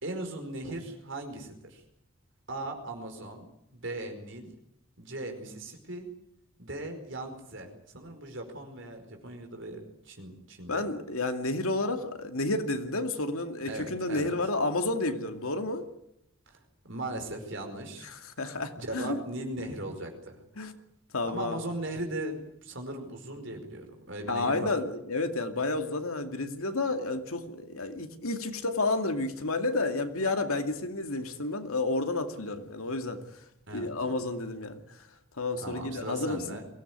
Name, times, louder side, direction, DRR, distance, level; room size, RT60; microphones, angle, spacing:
voice 1, 0.0-1.8 2.5-3.5 3.7-4.5 5.0-6.1 6.6-10.8 13.6-14.3 16.5-18.1 18.7-20.4 21.2-24.7 33.7-33.9 35.6-36.6, right 1 dB, 60° right, 5 dB, 4.9 m, -38 dB
voice 2, 10.7-15.9 18.1-19.2 20.6-20.7 21.1-21.6 24.3-33.2 33.7-34.8 35.4-36.6, left 2 dB, 80° left, 6 dB, 2.4 m, -31 dB
23.0 x 17.0 x 9.5 m, 0.80 s
head